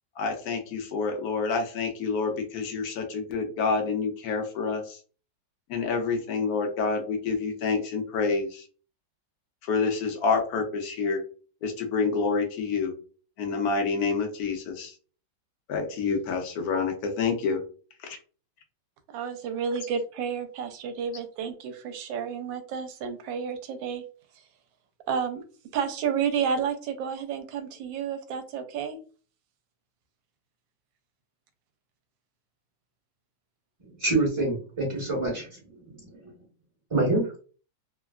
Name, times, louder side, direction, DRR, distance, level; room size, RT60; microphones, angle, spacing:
voice 1, 0.2-5.0 5.7-8.7 9.6-11.2 11.6-12.9 13.4-14.9 15.7-17.6 18.0-18.2, left 4 dB, 75° left, 4 dB, 0.9 m, -28 dB
voice 2, 19.1-24.0 25.1-25.4 25.7-29.0, right 7 dB, 80° right, 7 dB, 1.3 m, -31 dB
voice 3, 34.0-35.5 36.0-36.3 36.9-37.3, right 2 dB, 20° right, -4 dB, 1.0 m, -26 dB
3.2 x 2.3 x 2.3 m, 0.39 s
omnidirectional pair, 2.1 m